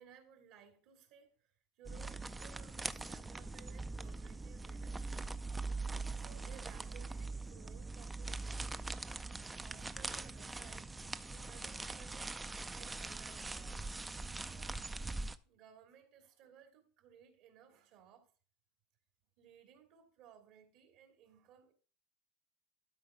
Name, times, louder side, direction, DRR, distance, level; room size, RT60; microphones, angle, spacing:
voice 1, 0.0-5.3 6.2-8.7 9.4-10.9 11.3-12.4 12.7-14.0 14.4-14.8 15.2-18.3 19.4-21.7, right 8 dB, 65° right, 2.6 m, -60 dB
sound 1, 1.8-15.4, right 3 dB, 10° right, 0.4 m, -42 dB
12.5 x 4.5 x 5.0 m
supercardioid pair, 140°, 0 cm